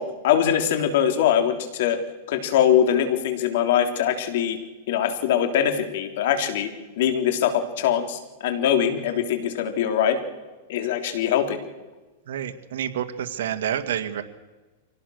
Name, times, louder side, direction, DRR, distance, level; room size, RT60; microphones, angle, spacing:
voice 1, 0.0-2.0 2.3-4.6 4.9-6.7 7.0-10.2 10.7-11.6, left 9 dB, 65° left, 7 dB, 3.4 m, -22 dB
voice 2, 12.3-14.2, right 10 dB, 75° right, 6 dB, 2.0 m, -28 dB
24.5 x 18.0 x 6.5 m, 1.2 s
supercardioid pair, 145°, 0 cm